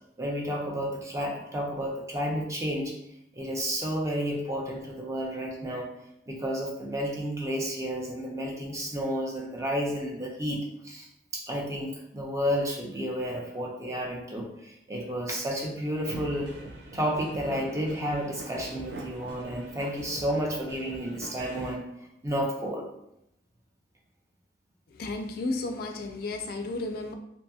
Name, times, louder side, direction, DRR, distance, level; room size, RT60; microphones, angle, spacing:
voice 1, 0.2-2.9 3.3-5.9 6.3-11.1 11.3-16.5 16.9-21.8 22.2-22.9, equal, 15° right, -1 dB, 0.5 m, -31 dB
sound 1, 16.1-21.7, right 2 dB, 70° right, 0.5 m, -42 dB
voice 2, 24.9-27.1, left 2 dB, 55° left, 5 dB, 0.3 m, -33 dB
2.7 x 2.6 x 2.3 m, 0.80 s
head